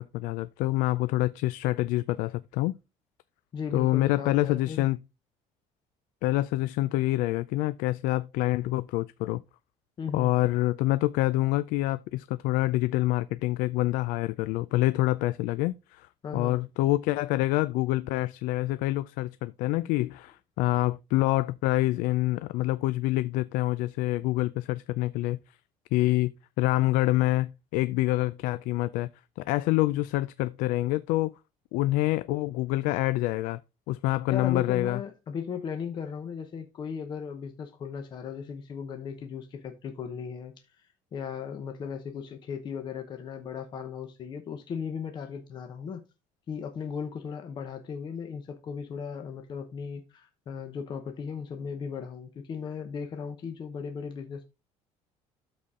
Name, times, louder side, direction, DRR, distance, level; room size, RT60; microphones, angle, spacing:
voice 1, 0.0-2.7 3.7-5.0 6.2-9.4 10.1-25.4 25.9-29.1 29.4-31.3 31.7-33.6 33.9-35.0, left 17 dB, 85° left, 0.4 m, -26 dB
voice 2, 3.5-4.9 10.0-10.3 16.2-16.6 34.3-46.0 46.5-54.4, left 6 dB, 35° left, 0.9 m, -37 dB
12.5 x 4.2 x 3.7 m
cardioid pair, 170°, 14 cm